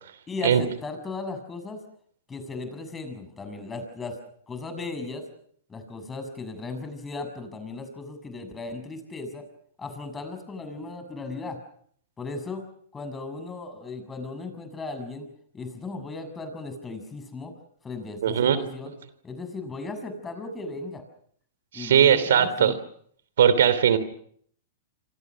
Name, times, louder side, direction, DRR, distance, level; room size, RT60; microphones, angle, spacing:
voice 1, 0.3-1.8 2.3-4.2 4.5-5.2 5.7-9.4 9.8-11.6 12.2-12.6 12.9-15.3 15.5-17.5 17.8-18.9 19.2-21.0 21.7-22.7, left 3 dB, 15° left, 8 dB, 6.9 m, -36 dB
voice 2, 18.2-18.6 21.7-22.7 23.4-24.0, right 9 dB, 75° right, 14 dB, 3.0 m, -19 dB
28.0 x 25.5 x 6.3 m, 0.64 s
hypercardioid pair, 120°, 0 cm